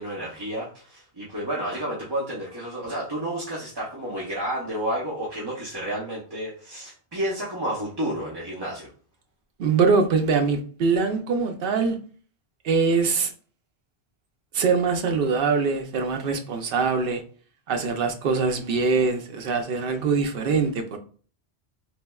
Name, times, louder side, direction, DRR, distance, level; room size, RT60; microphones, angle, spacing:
voice 1, 0.0-8.9, right 1 dB, 25° right, 0.6 m, -31 dB
voice 2, 9.6-12.0 12.6-13.3 14.5-17.2 17.7-21.0, right 4 dB, 65° right, 0.7 m, -23 dB
3.4 x 3.1 x 2.3 m
omnidirectional pair, 1.1 m